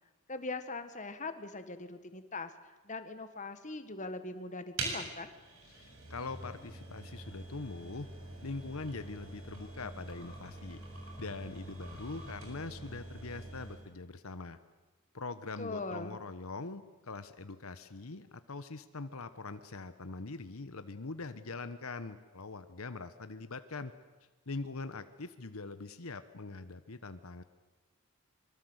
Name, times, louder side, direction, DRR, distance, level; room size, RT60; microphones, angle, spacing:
voice 1, 0.3-2.5 2.8-5.3 15.6-16.2, left 3 dB, 35° left, 9 dB, 1.7 m, -41 dB
sound 1, 4.8-13.9, right 2 dB, 60° right, 7.6 m, -45 dB
voice 2, 5.7-8.1 8.4-10.8 11.2-14.6 15.1-23.9 24.5-27.4, left 3 dB, 70° left, 11 dB, 1.1 m, -42 dB
25.5 x 23.5 x 8.1 m, 1.2 s
head